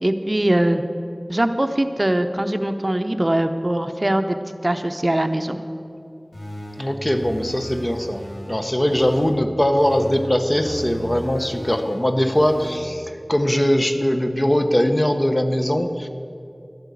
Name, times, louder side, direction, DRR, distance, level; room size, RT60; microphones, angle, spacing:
voice 1, 0.0-0.8 1.3-4.4 4.6-5.6, right 1 dB, 40° right, 8 dB, 0.7 m, -21 dB
sound 1, 6.3-9.3 9.7-12.8, equal, 80° left, 3.5 m, -35 dB
voice 2, 6.8-16.1, equal, 30° left, 7 dB, 1.0 m, -21 dB
12.0 x 8.9 x 8.3 m, 2.5 s
wide cardioid pair, 40°, 0 cm